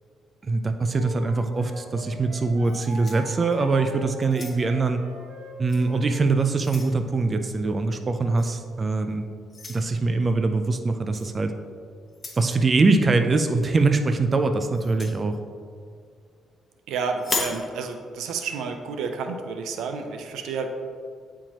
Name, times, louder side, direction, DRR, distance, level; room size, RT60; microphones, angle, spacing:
voice 1, 0.4-5.0 5.6-9.3 9.7-11.5 12.4-15.4, right 3 dB, 35° right, 7 dB, 0.4 m, -23 dB
Wind instrument woodwind instrument, 0.9-6.3, right 2 dB, 50° right, 1.1 m, -42 dB
sound 1, 2.6-3.8 4.2-4.9 5.7-5.9 6.3-7.0 8.4-8.6 9.5-9.8 11.1-11.3 12.1-12.5 14.7-15.2 17.2-17.6, left 3 dB, 35° left, 1.1 m, -34 dB
voice 2, 16.9-20.7, right 5 dB, 85° right, 6 dB, 0.5 m, -30 dB
8.8 x 4.5 x 2.9 m, 2.1 s
cardioid pair, 90°, 0 cm